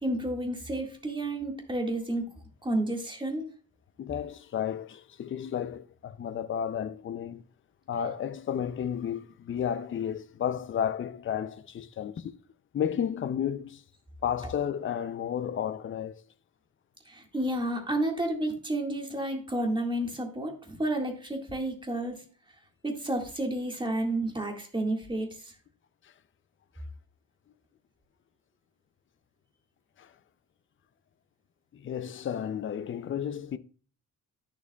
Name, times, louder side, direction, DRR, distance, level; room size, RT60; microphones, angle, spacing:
voice 1, 0.0-2.2 2.6-3.4 17.1-22.2 22.8-25.5, right 1 dB, 15° right, 1.8 m, -31 dB
voice 2, 4.0-7.4 7.9-12.3 12.7-13.8 14.2-16.2 30.0-30.1 31.7-33.6, left 9 dB, 40° left, 0.5 m, -32 dB
10.5 x 6.8 x 2.3 m
wide cardioid pair, 150°, 34 cm